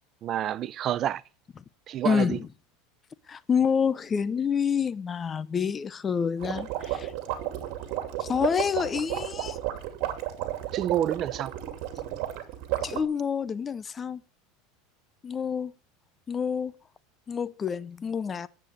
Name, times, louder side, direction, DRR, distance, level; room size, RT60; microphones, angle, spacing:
voice 1, 0.2-1.2 1.9-2.4 10.7-11.5, right 11 dB, 40° right, 0.5 m, -28 dB
voice 2, 2.0-2.4 3.3-7.1 8.2-9.6 12.8-14.2 15.2-15.7 16.3-16.7 17.3-18.5, left 6 dB, 25° left, 0.7 m, -28 dB
sound 1, 6.4-13.0, right 13 dB, 60° right, 2.6 m, -32 dB
10.5 x 8.5 x 7.9 m
supercardioid pair, 130°, 0 cm